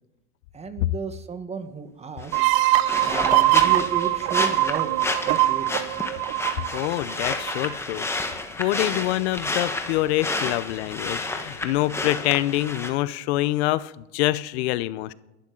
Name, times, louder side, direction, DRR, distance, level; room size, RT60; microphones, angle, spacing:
voice 1, 0.5-2.4 3.0-5.0 5.2-5.8, right 5 dB, 20° right, 9 dB, 1.3 m, -33 dB
sound 1, 2.2-12.9, left 2 dB, 5° left, 1.3 m, -31 dB
sound 2, 2.3-7.8, right 17 dB, 60° right, 0.8 m, -22 dB
voice 2, 6.7-8.1 8.5-15.1, left 16 dB, 70° left, 17 dB, 0.7 m, -25 dB
29.5 x 11.5 x 3.8 m, 1.0 s
supercardioid pair, 125°, 34 cm